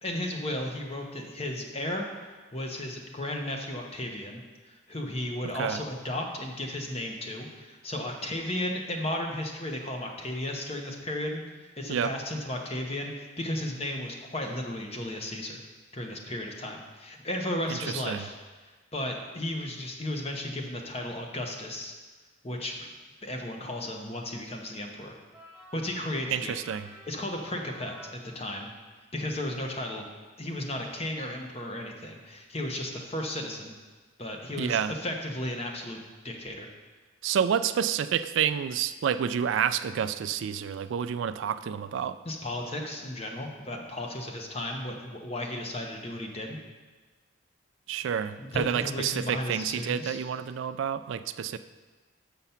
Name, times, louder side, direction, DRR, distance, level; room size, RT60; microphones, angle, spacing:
voice 1, 0.0-2.0 2.5-15.6 15.9-18.3 18.9-21.9 22.4-22.9 23.2-25.2 25.7-26.5 27.1-28.7 29.1-30.1 30.4-33.7 34.2-36.7 42.2-46.6 48.4-50.2, left 1 dB, 30° left, 2 dB, 0.9 m, -34 dB
sound 1, 25.3-28.8, left 1 dB, 5° left, 1.5 m, -52 dB
voice 2, 26.3-26.9 34.6-34.9 37.2-42.2 47.9-51.6, right 8 dB, 70° right, 12 dB, 0.3 m, -29 dB
6.8 x 6.0 x 5.6 m, 1.3 s
head